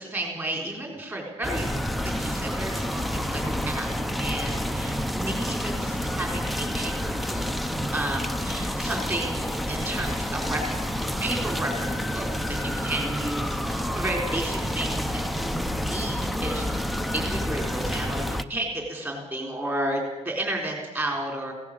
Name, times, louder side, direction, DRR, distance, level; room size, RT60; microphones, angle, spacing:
voice 1, 0.0-1.7 2.2-3.9 4.2-7.4 7.9-10.8 11.2-12.3 12.6-13.5 13.9-16.7 17.1-21.5, right 1 dB, 15° right, 1 dB, 4.0 m, -32 dB
sound 1, 1.4-18.4, equal, ahead, 0.6 m, -29 dB
19.0 x 17.0 x 8.6 m, 1.1 s
cardioid pair, 170°, 13 cm